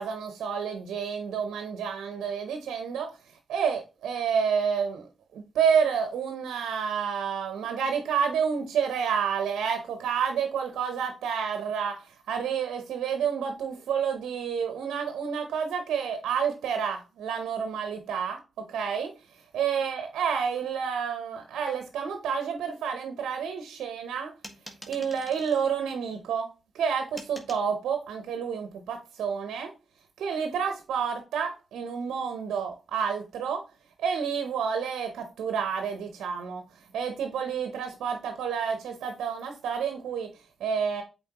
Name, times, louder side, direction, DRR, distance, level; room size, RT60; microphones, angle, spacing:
voice 1, 0.0-24.3 24.9-29.7 30.2-33.7 34.0-41.0, right 7 dB, 85° right, 0.7 m, -29 dB
sound 1, 24.4-25.6 27.2-27.7, equal, 15° left, 1.8 m, -45 dB
8.0 x 4.1 x 2.9 m
supercardioid pair, 40°, 0 cm